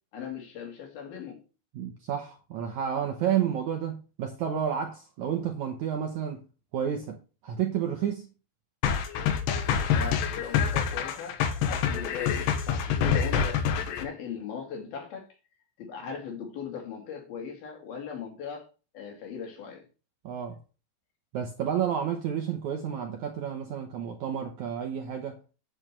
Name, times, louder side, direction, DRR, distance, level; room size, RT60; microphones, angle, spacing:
voice 1, 0.1-1.5 9.9-11.4 11.7-15.4 15.8-18.7 18.9-19.9, left 7 dB, 60° left, 4.3 m, -39 dB
voice 2, 1.7-6.4 6.7-8.3 20.2-20.6 21.3-25.4, right 9 dB, 85° right, 1.6 m, -31 dB
sound 1, 8.8-14.0, left 7 dB, 75° left, 3.3 m, -26 dB
8.9 x 8.8 x 3.2 m
omnidirectional pair, 5.0 m